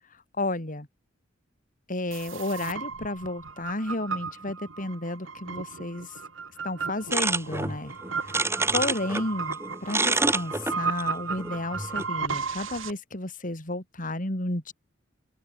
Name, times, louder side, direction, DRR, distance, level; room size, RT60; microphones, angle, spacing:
voice 1, 0.4-0.9 1.9-6.2 6.6-7.9 8.2-8.4 8.7-14.7, left 2 dB, 45° left, 3.6 m, -32 dB
sound 1, 2.1-12.9, right 5 dB, 85° right, 2.7 m, -35 dB
sound 2, 7.1-9.3 9.5-12.1, right 3 dB, 15° right, 2.7 m, -27 dB
open air
head